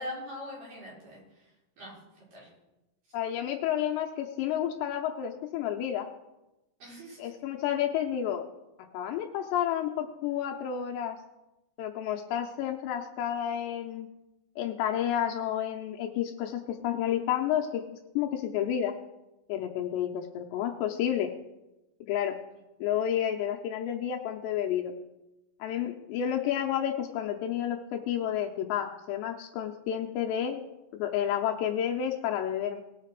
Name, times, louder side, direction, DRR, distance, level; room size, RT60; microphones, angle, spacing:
voice 1, 0.0-1.5 1.8-2.0 2.3-2.5 6.8-7.3, left 1 dB, 50° right, -6 dB, 5.7 m, -42 dB
voice 2, 3.1-6.1 7.2-8.4 8.9-11.2 11.8-14.1 14.6-17.8 18.2-18.9 19.5-21.3 22.1-22.4 22.8-24.9 25.6-30.6 30.9-32.8, left 10 dB, 80° left, 2 dB, 2.8 m, -30 dB
20.0 x 6.6 x 4.6 m, 0.99 s
omnidirectional pair, 5.4 m